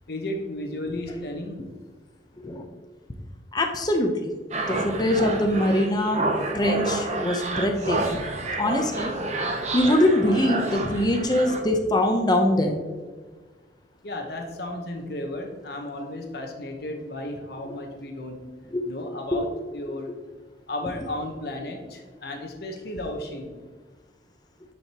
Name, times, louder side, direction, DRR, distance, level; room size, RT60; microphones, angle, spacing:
voice 1, 0.1-1.7 14.0-18.5 18.9-20.1 20.7-23.6, left 1 dB, 55° left, 3 dB, 1.0 m, -34 dB
voice 2, 3.5-4.3 4.7-6.2 6.5-8.2 8.6-9.1 9.7-12.8 18.7-18.9 19.3-19.4, left 1 dB, 20° left, 4 dB, 0.7 m, -23 dB
sound 1, 4.5-11.6, right 2 dB, 35° right, 0.7 m, -29 dB
9.9 x 4.7 x 2.9 m, 1.4 s
head